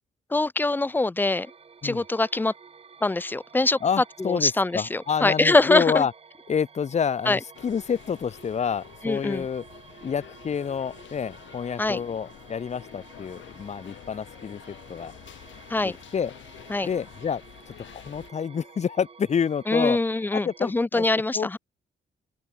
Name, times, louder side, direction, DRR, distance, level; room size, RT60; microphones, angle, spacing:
voice 1, 0.3-1.5 1.8-2.5 3.0-3.8 4.2-6.1 7.3-7.4 9.0-9.5 11.8-12.0 15.7-16.0 16.7-16.9 19.7-21.6, left 2 dB, 10° left, 0.3 m, -23 dB
sound 1, 1.3-20.8, right 5 dB, 30° right, 0.8 m, -51 dB
voice 2, 3.8-6.1 6.5-9.6 10.0-15.1 15.8-16.3 16.8-17.4 17.7-20.0 20.3-21.0 21.3-21.6, left 7 dB, 35° left, 0.7 m, -28 dB
sound 2, 7.5-18.3, left 12 dB, 80° left, 0.9 m, -48 dB
open air
cardioid pair, 120°, 19 cm